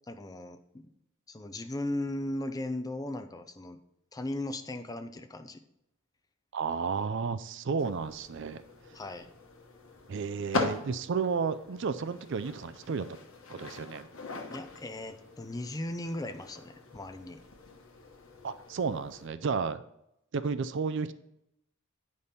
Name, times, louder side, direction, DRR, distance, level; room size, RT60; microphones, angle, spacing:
voice 1, 0.1-0.8 1.3-3.8 4.1-5.6 8.9-9.3 14.5-17.4, left 1 dB, 15° left, 7 dB, 0.5 m, -37 dB
voice 2, 6.5-8.6 10.1-13.1 13.5-14.1 18.4-19.8 20.3-21.1, right 5 dB, 55° right, 13 dB, 0.4 m, -32 dB
sound 1, 7.8-19.3, left 3 dB, 65° left, 1.2 m, -41 dB
9.4 x 5.2 x 4.2 m, 0.80 s
head